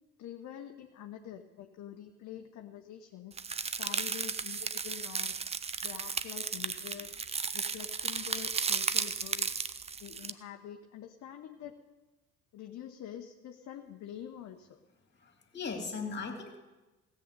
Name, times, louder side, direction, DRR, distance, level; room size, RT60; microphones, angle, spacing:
voice 1, 0.2-3.4 3.8-5.5 5.8-7.2 7.5-9.5 10.0-11.8 12.5-14.8, left 10 dB, 40° left, 5 dB, 1.0 m, -46 dB
sound 1, 3.4-10.3, right 5 dB, 15° right, 0.5 m, -34 dB
voice 2, 15.2-16.6, left 4 dB, 25° left, 3 dB, 2.6 m, -38 dB
16.5 x 7.9 x 6.8 m, 1.2 s
figure-of-eight pair, 60°, 43 cm